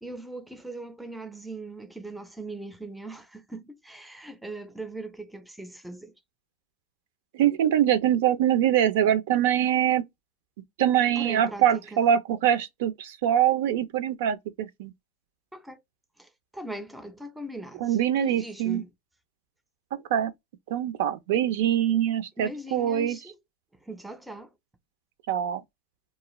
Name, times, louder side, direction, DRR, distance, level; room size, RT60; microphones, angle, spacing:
voice 1, 0.0-6.1 11.1-12.0 15.5-15.8 16.2-18.9 22.4-23.4 23.8-24.5, right 1 dB, 5° right, 0.4 m, -40 dB
voice 2, 7.3-10.0 10.8-14.9 17.8-18.8 20.1-20.3 20.7-23.2 25.3-25.6, right 10 dB, 70° right, 0.4 m, -24 dB
2.4 x 2.3 x 2.9 m
supercardioid pair, 130°, 0 cm